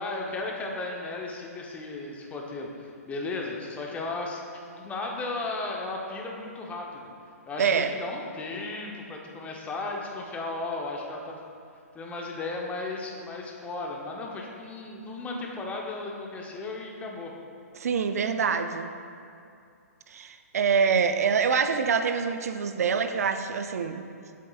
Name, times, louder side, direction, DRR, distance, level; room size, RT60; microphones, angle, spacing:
voice 1, 0.0-4.4 4.7-7.1 7.5-11.4 11.9-17.3, left 2 dB, 15° left, 0 dB, 0.8 m, -35 dB
voice 2, 7.6-7.9 17.7-18.9 20.1-24.1, right 6 dB, 70° right, 9 dB, 0.4 m, -25 dB
7.6 x 7.4 x 2.3 m, 2.4 s
hypercardioid pair, 125°, 9 cm